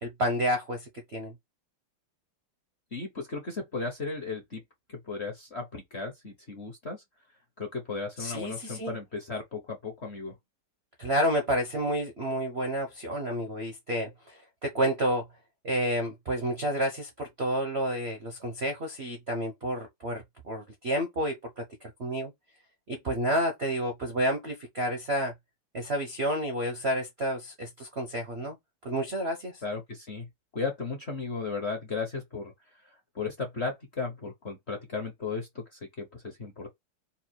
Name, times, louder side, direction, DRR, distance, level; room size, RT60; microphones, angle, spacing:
voice 1, 0.0-1.3 8.2-8.9 11.0-15.2 15.6-22.3 22.9-25.3 25.7-28.6 28.8-29.6, equal, 50° right, 0.8 m, -30 dB
voice 2, 2.9-4.6 5.1-7.0 7.6-10.3 29.6-30.3 30.5-32.5 33.1-36.7, left 4 dB, 40° left, 1.0 m, -35 dB
4.2 x 2.5 x 4.4 m
omnidirectional pair, 2.4 m